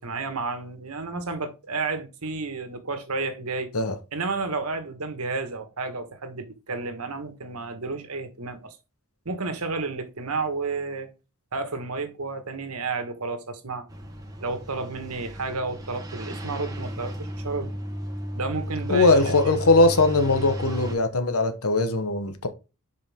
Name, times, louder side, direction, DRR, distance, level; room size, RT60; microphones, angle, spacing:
voice 1, 0.0-3.7 4.1-8.8 9.2-11.1 11.5-13.8 14.4-17.7 18.3-19.2 19.4-19.5, right 3 dB, 80° right, 1.5 m, -31 dB
sound 1, 13.9-21.0, equal, 15° right, 1.3 m, -34 dB
voice 2, 18.9-22.5, left 2 dB, 75° left, 1.1 m, -20 dB
7.3 x 5.3 x 3.6 m
head